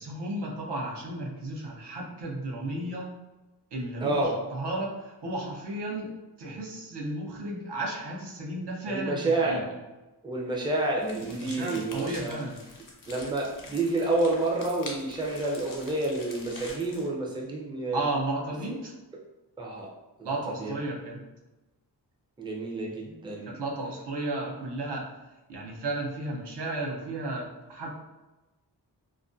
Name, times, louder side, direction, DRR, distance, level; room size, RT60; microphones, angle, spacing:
voice 1, 0.0-3.1 3.7-9.6 11.3-12.6 17.9-18.9 20.2-21.2 23.5-25.0 25.5-27.9, right 2 dB, 75° right, -2 dB, 0.7 m, -33 dB
voice 2, 4.0-4.3 8.9-9.6 10.2-12.4 13.1-18.0 18.7-18.8 19.6-19.9 20.2-20.7 22.4-23.6, right 2 dB, 10° right, -2 dB, 0.4 m, -29 dB
sound 1, 11.0-17.1, left 2 dB, 50° left, 0.7 m, -45 dB
2.3 x 2.2 x 2.5 m, 1.1 s
wide cardioid pair, 75°, 41 cm